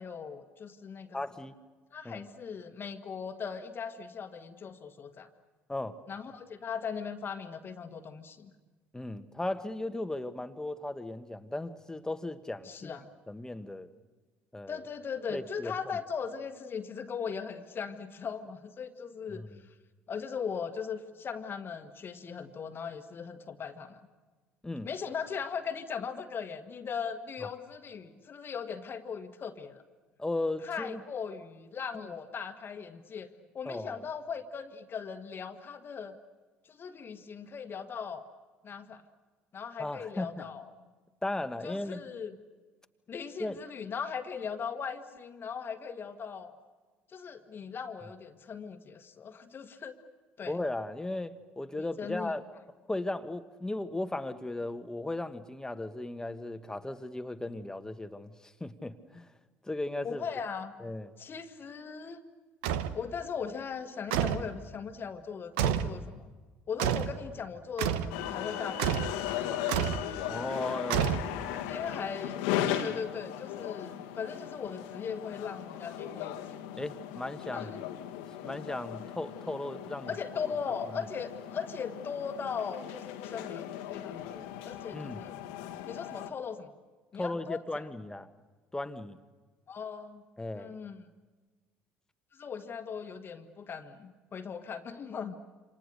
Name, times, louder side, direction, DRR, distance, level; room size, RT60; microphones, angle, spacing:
voice 1, 0.0-1.2 1.9-5.3 6.1-8.5 12.6-13.1 14.7-19.4 20.1-24.0 24.8-29.8 30.6-36.2 36.6-38.3 38.6-39.0 39.5-40.7 41.6-42.4 43.1-46.6 47.1-49.9 50.4-50.6 52.0-52.3 60.0-60.7 61.2-62.2 62.9-66.3 66.7-69.8 71.5-72.4 72.8-76.6 77.5-77.7 80.1-85.4 85.9-86.7 87.1-87.6 89.7-90.2 90.5-91.0 92.4-95.4, left 6 dB, 35° left, 7 dB, 1.6 m, -39 dB
voice 2, 1.1-1.6 2.0-2.2 5.7-6.0 8.9-13.0 13.3-13.9 14.5-14.8 15.3-15.7 19.3-19.6 24.6-24.9 27.4-27.5 30.2-31.0 32.0-32.1 33.6-34.0 39.8-40.5 41.2-42.0 43.4-43.6 50.5-52.4 52.9-59.3 59.6-60.2 60.8-61.1 70.3-71.2 76.8-77.7 78.4-80.1 80.4-80.5 84.9-85.2 87.1-88.3 88.7-89.2 90.4-90.7, left 2 dB, 10° left, 10 dB, 1.5 m, -36 dB
sound 1, 62.6-63.0 64.1-64.5 65.6-66.0 66.8-67.2 67.8-68.1 68.8-69.2 69.7-70.1 70.9-71.5, right 9 dB, 65° right, 1.1 m, -29 dB
sound 2, 68.1-86.3, left 11 dB, 65° left, 1.5 m, -38 dB
28.0 x 27.0 x 6.7 m, 1.3 s
figure-of-eight pair, 55°, 6 cm